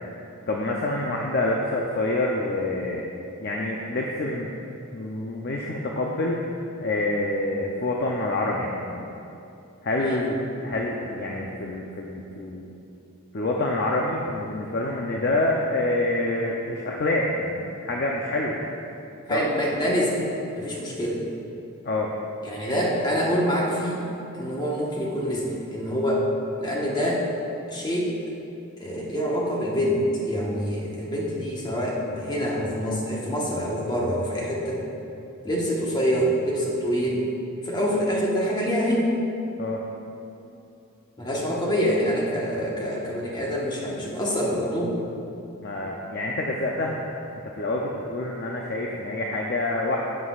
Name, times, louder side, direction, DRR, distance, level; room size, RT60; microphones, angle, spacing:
voice 1, 0.5-3.1 3.4-4.5 4.9-6.4 6.8-9.1 9.8-12.7 13.3-18.6 19.3-19.4 21.8-22.1 39.6-39.8 45.6-47.0 47.4-50.0, left 2 dB, 50° left, -1 dB, 0.6 m, -27 dB
voice 2, 19.3-20.3 20.5-21.2 22.4-24.0 24.3-26.3 26.6-27.3 27.7-28.1 28.8-34.8 35.4-37.2 37.6-39.1 41.2-45.0, equal, 20° left, -3 dB, 1.2 m, -26 dB
11.0 x 8.1 x 2.4 m, 2.7 s
head